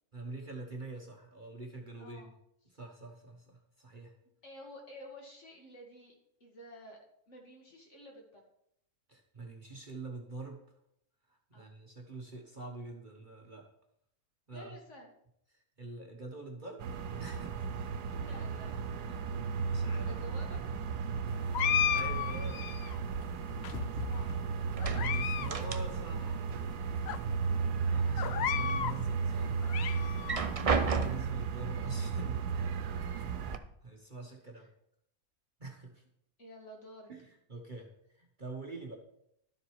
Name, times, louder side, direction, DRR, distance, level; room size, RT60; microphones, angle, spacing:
voice 1, 0.1-2.2 2.7-4.1 9.1-10.6 11.3-13.7 14.5-14.8 15.8-16.8 17.2-17.9 19.1-20.2 21.9-22.7 24.9-26.4 27.9-29.6 30.9-32.9 33.1-33.4 33.8-34.7 35.6-36.0 37.1-39.0, right 3 dB, 35° right, 1 dB, 1.3 m, -45 dB
voice 2, 2.0-2.3 4.4-6.1 6.4-7.0 7.3-8.4 11.5-11.7 14.5-15.1 18.1-19.2 20.0-20.6 23.7-24.3 27.4-27.7 30.4-30.7 34.6-34.7 36.4-37.1, equal, 50° left, 0 dB, 2.4 m, -51 dB
sound 1, 16.8-33.6, right 5 dB, 90° right, 1.3 m, -34 dB
sound 2, 21.5-23.0 23.6-24.3 24.8-25.5 25.8-25.9 26.6-26.7 27.1-27.2 28.2-29.0 29.4-30.4, left 9 dB, 70° left, 0.6 m, -33 dB
sound 3, 23.1-24.3 24.6-26.3 26.5-27.5 27.9-28.7 29.2-29.3 30.1-31.5 32.4-32.5 32.9-33.6, right 5 dB, 70° right, 0.3 m, -34 dB
12.0 x 7.5 x 4.7 m, 0.74 s
omnidirectional pair, 1.6 m